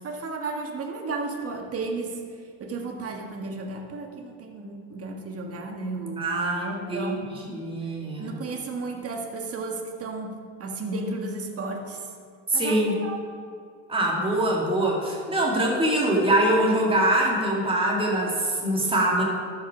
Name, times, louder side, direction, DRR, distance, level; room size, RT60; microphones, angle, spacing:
voice 1, 0.0-2.2 2.6-7.3 8.2-10.3 10.6-12.1 12.5-13.2, right 3 dB, 35° right, 2 dB, 1.6 m, -33 dB
voice 2, 6.2-7.1 7.4-8.4 12.5-13.0 13.9-19.2, right 1 dB, 15° right, -3 dB, 2.4 m, -23 dB
12.5 x 6.0 x 5.0 m, 2.2 s
hypercardioid pair, 75°, 39 cm